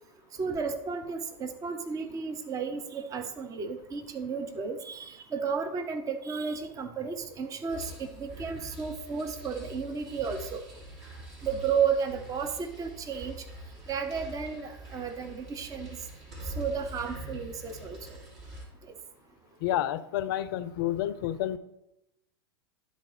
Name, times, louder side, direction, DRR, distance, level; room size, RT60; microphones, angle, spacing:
voice 1, 0.4-10.6 11.4-13.3 13.9-16.0 16.6-18.0, right 6 dB, 25° right, 7 dB, 0.7 m, -33 dB
sound 1, 7.7-18.6, right 1 dB, 50° right, 2.4 m, -44 dB
voice 2, 19.6-21.6, left 12 dB, 55° left, 15 dB, 0.4 m, -29 dB
12.0 x 4.0 x 3.1 m, 0.88 s
figure-of-eight pair, 85°, 13 cm